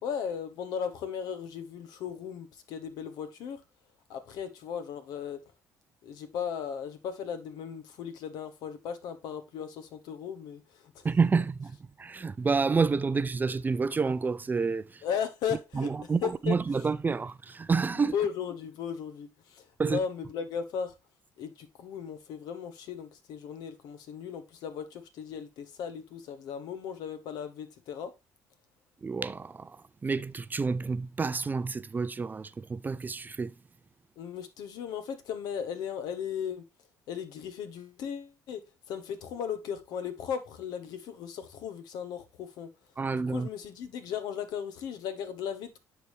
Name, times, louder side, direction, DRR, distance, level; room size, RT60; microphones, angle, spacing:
voice 1, 0.0-3.6 4.1-5.4 6.0-11.0 15.0-15.9 16.2-16.6 18.1-20.9 21.4-28.1 34.2-36.7 37.1-38.6 38.9-42.7 43.1-45.8, left 7 dB, 70° left, 1.1 m, -36 dB
voice 2, 11.0-15.0 15.7-18.1 19.8-20.0 29.0-33.5 43.0-43.5, right 4 dB, 25° right, 0.4 m, -29 dB
10.5 x 3.5 x 3.2 m
supercardioid pair, 65°, 7 cm